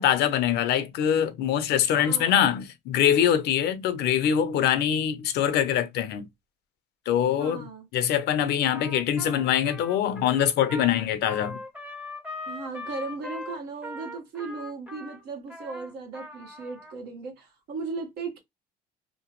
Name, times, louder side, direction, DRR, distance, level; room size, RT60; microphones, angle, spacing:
voice 1, 0.0-6.3 7.1-7.7 7.9-11.6, left 9 dB, 75° left, 0.6 m, -24 dB
voice 2, 1.9-2.5 7.4-7.9 12.5-18.4, right 4 dB, 75° right, 1.3 m, -37 dB
Trumpet, 8.7-16.9, left 2 dB, 5° right, 0.7 m, -40 dB
3.0 x 2.1 x 2.9 m
cardioid pair, 110°, 17 cm